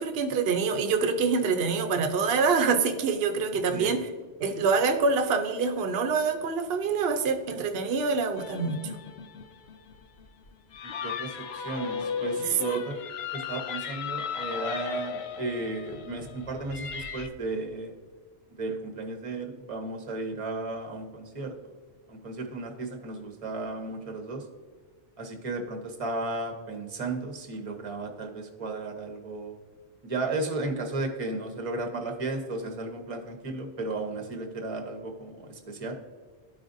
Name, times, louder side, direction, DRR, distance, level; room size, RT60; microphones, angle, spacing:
voice 1, 0.0-4.1 4.4-8.9 12.4-12.8, right 5 dB, 65° right, 5 dB, 0.9 m, -26 dB
sound 1, 8.4-17.3, left 6 dB, 70° left, 0.8 m, -36 dB
voice 2, 10.8-13.0 13.3-17.9 18.6-21.7 22.1-24.5 25.2-29.6 30.0-35.9, right 2 dB, 35° right, 3 dB, 1.0 m, -34 dB
13.0 x 5.0 x 2.6 m, 1.4 s
omnidirectional pair, 1.1 m